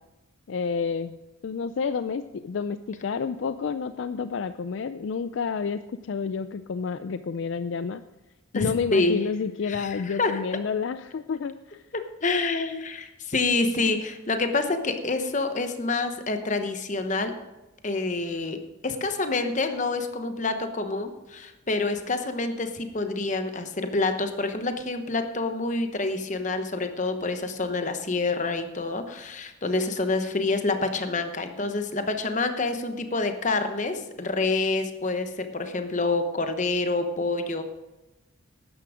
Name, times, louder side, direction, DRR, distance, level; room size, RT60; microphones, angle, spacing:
voice 1, 0.5-1.2 1.4-8.0 8.5-11.8, left 5 dB, 65° left, 11 dB, 0.4 m, -29 dB
voice 2, 8.5-9.2 9.7-10.4 11.9-17.3 17.8-18.6 18.8-37.6, left 3 dB, 35° left, 7 dB, 1.0 m, -27 dB
12.5 x 9.7 x 4.9 m, 1.0 s
head